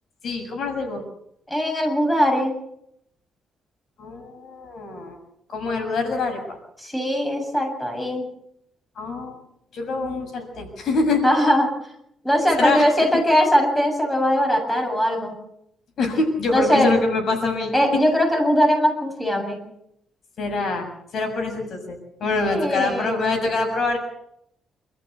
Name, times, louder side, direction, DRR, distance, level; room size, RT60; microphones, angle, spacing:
voice 1, 0.2-1.0 4.0-5.2 5.5-6.6 8.9-9.4 9.7-11.2 12.6-12.9 16.0-18.0 20.4-20.9 21.1-24.0, left 3 dB, 55° left, 5 dB, 6.7 m, -25 dB
voice 2, 1.5-2.5 6.8-8.2 11.2-11.7 12.2-15.4 16.5-16.9 17.7-19.6 22.4-23.2, equal, 10° left, 3 dB, 7.6 m, -20 dB
27.5 x 14.5 x 8.2 m, 0.75 s
cardioid pair, 110°, 0 cm